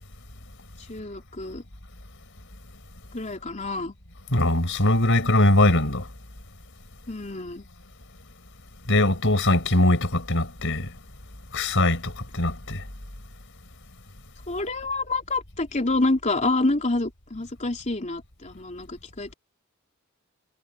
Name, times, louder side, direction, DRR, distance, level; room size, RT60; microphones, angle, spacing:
voice 1, 0.9-1.6 3.1-3.9 7.1-7.7 14.5-19.3, left 2 dB, 35° left, 3.2 m, -27 dB
voice 2, 4.3-6.0 8.9-10.9 11.5-12.8, left 1 dB, 60° left, 5.0 m, -21 dB
head